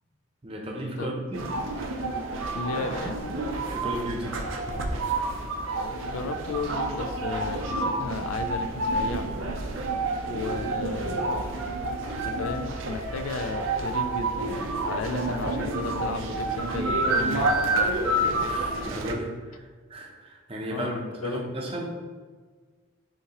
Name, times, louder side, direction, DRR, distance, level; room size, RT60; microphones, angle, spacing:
voice 1, 0.4-1.4 3.7-4.4 18.4-21.9, right 1 dB, 25° right, -1 dB, 0.6 m, -34 dB
sound 1, 1.3-19.1, right 2 dB, 75° right, 0.5 m, -29 dB
voice 2, 2.5-3.2 5.7-9.3 10.2-11.4 12.2-17.9 20.7-21.4, left 4 dB, 90° left, 9 dB, 0.4 m, -34 dB
sound 2, 9.7-17.4, equal, 45° left, 0.8 m, -47 dB
6.4 x 2.9 x 2.9 m, 1.5 s
head